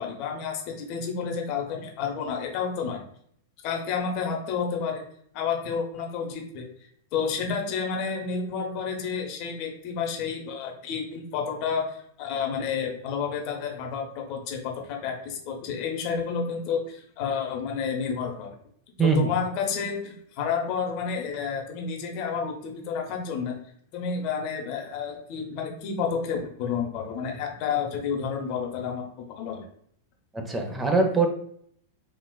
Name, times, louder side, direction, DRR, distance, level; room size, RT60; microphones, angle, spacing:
voice 1, 0.0-3.0 3.6-5.0 5.3-6.7 7.1-18.5 19.0-23.6 23.9-29.7, left 6 dB, 50° left, 1 dB, 0.8 m, -30 dB
voice 2, 19.0-19.3 30.3-31.3, right 4 dB, 15° right, 3 dB, 0.5 m, -22 dB
3.9 x 2.3 x 2.2 m, 0.63 s
hypercardioid pair, 100°, 0 cm